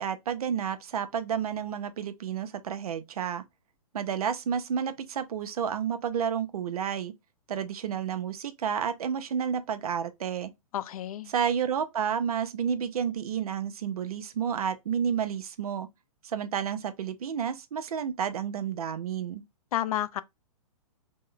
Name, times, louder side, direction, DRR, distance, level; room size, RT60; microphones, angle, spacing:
voice 1, 0.0-3.4 3.9-7.1 7.5-10.5 11.3-15.9 16.2-19.4, right 8 dB, 80° right, 0.6 m, -30 dB
voice 2, 10.7-11.3 19.7-20.2, left 12 dB, 75° left, 0.4 m, -30 dB
3.0 x 2.1 x 3.7 m
hypercardioid pair, 135°, 19 cm